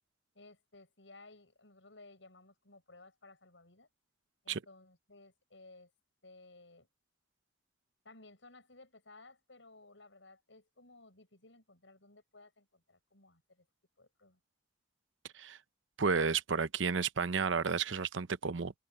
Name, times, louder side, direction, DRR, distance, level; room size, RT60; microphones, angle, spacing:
voice 1, 0.3-3.9 4.4-5.9 6.2-6.9 8.0-13.7 14.0-14.4, left 2 dB, 80° left, 7.8 m, -58 dB
voice 2, 16.0-18.7, right 5 dB, 85° right, 0.7 m, -32 dB
open air
head